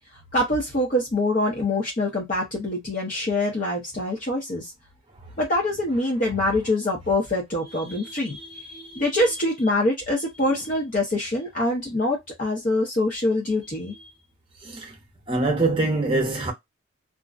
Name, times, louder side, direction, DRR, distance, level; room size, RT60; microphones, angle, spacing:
voice 1, 0.3-4.7 5.4-8.4 9.0-13.9, left 1 dB, 40° left, 0.6 m, -24 dB
voice 2, 7.9-9.1 10.5-10.6 14.6-15.0 15.3-16.5, right 2 dB, 25° right, 0.8 m, -26 dB
2.5 x 2.0 x 2.4 m
head